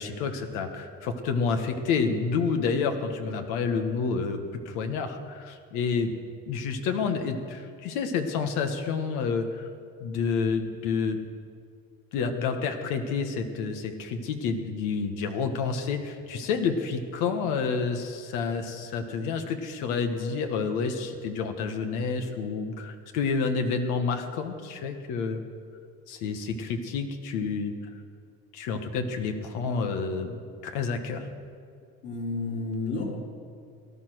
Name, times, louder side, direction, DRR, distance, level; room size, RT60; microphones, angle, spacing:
voice 1, 0.0-6.1 6.5-9.7 10.0-11.2 12.1-25.4 26.1-27.7 28.5-31.2, left 5 dB, 80° left, 6 dB, 1.5 m, -29 dB
voice 2, 32.0-33.0, left 3 dB, 50° left, -2 dB, 4.0 m, -31 dB
18.5 x 11.5 x 6.3 m, 2.3 s
cardioid pair, 120°, 30 cm